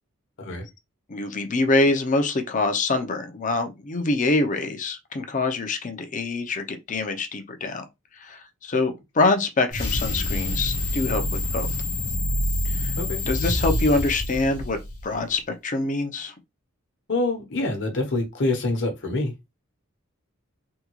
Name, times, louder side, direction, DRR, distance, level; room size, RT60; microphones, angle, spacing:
voice 1, 1.1-7.8 8.2-11.2 11.5-11.7 12.6-12.9 13.3-14.8 15.0-16.3, left 2 dB, 35° left, 0.6 m, -25 dB
sound 1, 9.7-15.1, equal, 80° left, 0.9 m, -26 dB
voice 2, 17.1-19.3, left 2 dB, 55° left, 1.0 m, -26 dB
3.6 x 2.3 x 3.0 m
head